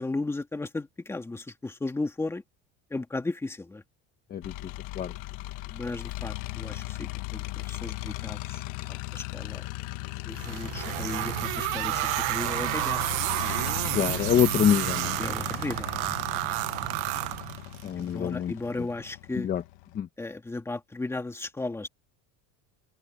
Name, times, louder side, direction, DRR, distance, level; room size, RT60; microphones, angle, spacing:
voice 1, 0.0-2.4 2.9-3.8 5.7-8.6 8.9-9.6 10.3-13.2 15.2-16.1 18.0-19.5 20.2-21.9, left 2 dB, 10° left, 2.4 m, -35 dB
sound 1, 4.4-20.0, left 19 dB, 70° left, 1.3 m, -37 dB
sound 2, 10.3-17.9, right 21 dB, 80° right, 1.1 m, -30 dB
voice 2, 13.9-15.2 17.8-18.5 19.4-19.6 19.9-20.1, left 9 dB, 25° left, 1.2 m, -25 dB
open air
cardioid pair, 175°, 33 cm